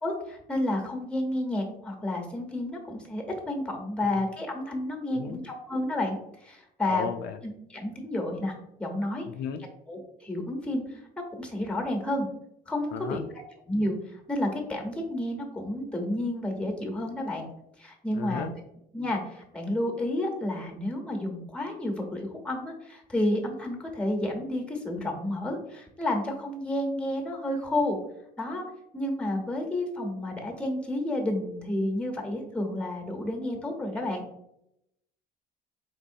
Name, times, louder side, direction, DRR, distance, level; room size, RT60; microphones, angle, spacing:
voice 1, 0.0-6.2 6.4-7.1 7.4-8.5 8.8-9.2 9.9-11.0 11.4-12.3 12.7-13.2 13.7-17.5 17.8-18.5 18.9-28.0 28.4-28.6 28.9-34.2, left 1 dB, 5° left, 3 dB, 0.9 m, -30 dB
voice 2, 5.1-5.4 6.9-7.4 9.3-9.6 12.9-13.2 18.1-18.5, left 7 dB, 80° left, 7 dB, 0.4 m, -34 dB
4.1 x 3.7 x 2.6 m, 0.79 s
cardioid pair, 110°, 17 cm